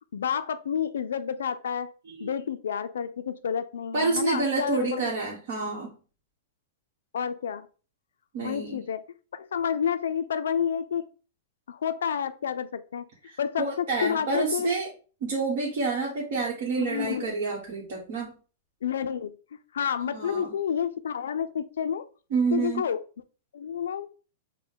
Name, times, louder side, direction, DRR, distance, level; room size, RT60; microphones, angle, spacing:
voice 1, 0.1-1.9 2.2-5.1 7.1-7.7 8.4-9.0 9.3-11.0 11.7-13.0 13.4-14.7 16.8-17.4 18.8-19.3 19.7-22.1 22.5-23.0 23.5-24.1, left 8 dB, 90° left, 12 dB, 0.4 m, -29 dB
voice 2, 3.9-5.9 8.3-8.8 13.3-14.9 15.2-18.3 20.1-20.5 22.3-22.9, right 4 dB, 60° right, -3 dB, 1.1 m, -28 dB
4.0 x 2.1 x 3.7 m, 0.37 s
hypercardioid pair, 140°, 0 cm